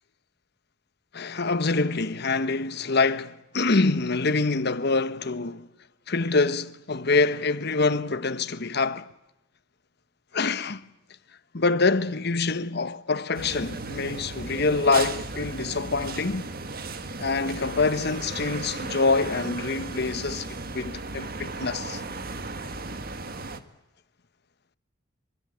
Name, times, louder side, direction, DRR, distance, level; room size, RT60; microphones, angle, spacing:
voice 1, 1.1-5.6 6.1-9.1 10.3-10.8 11.5-16.5 17.2-20.5 20.7-22.0, left 3 dB, 60° left, 1.2 m, -25 dB
sound 1, 13.3-23.6, right 3 dB, 55° right, 1.8 m, -35 dB
25.0 x 24.0 x 9.2 m
head